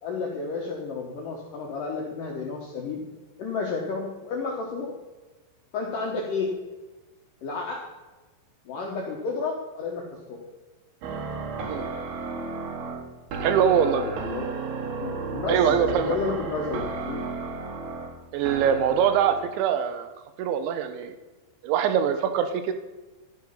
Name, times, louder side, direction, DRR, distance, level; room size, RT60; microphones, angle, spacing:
voice 1, 0.0-3.0 3.4-5.0 5.7-6.5 7.4-7.8 8.7-10.4 13.8-14.5 15.0-17.2, left 4 dB, 70° left, -1 dB, 2.0 m, -31 dB
sound 1, 11.0-19.5, right 4 dB, 60° right, 2.9 m, -33 dB
voice 2, 13.4-14.0 15.5-16.2 18.3-20.1 20.4-21.1 21.6-22.7, right 8 dB, 80° right, 8 dB, 2.9 m, -23 dB
12.0 x 9.1 x 5.7 m, 1.2 s
omnidirectional pair, 5.7 m